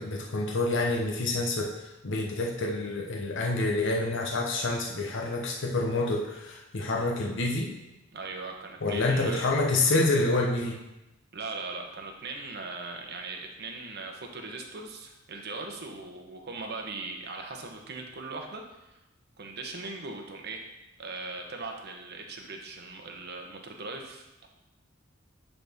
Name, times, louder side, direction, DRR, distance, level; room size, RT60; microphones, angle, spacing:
voice 1, 0.0-7.7 8.8-10.8, left 2 dB, 65° left, 0 dB, 0.8 m, -27 dB
voice 2, 8.1-9.5 11.3-19.0 19.4-20.7 21.0-24.5, right 3 dB, 55° right, 2 dB, 0.9 m, -39 dB
9.9 x 4.1 x 3.5 m, 0.96 s
head